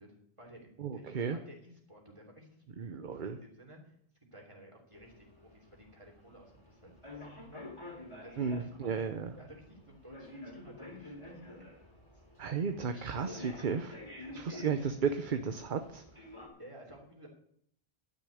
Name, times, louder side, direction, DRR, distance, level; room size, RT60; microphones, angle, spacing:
voice 1, 0.0-2.5 2.9-3.9 4.3-7.6 8.2-9.0 9.4-11.4 12.9-13.4 14.2-14.6 16.6-17.3, right 1 dB, 30° right, -1 dB, 3.1 m, -54 dB
voice 2, 0.8-1.4 2.8-3.4 8.4-9.3 12.4-13.9 14.3-16.0, right 6 dB, 50° right, 8 dB, 0.9 m, -34 dB
sound 1, 4.9-16.5, left 2 dB, 25° left, 3.0 m, -50 dB
11.5 x 6.5 x 8.4 m, 0.66 s
omnidirectional pair, 1.1 m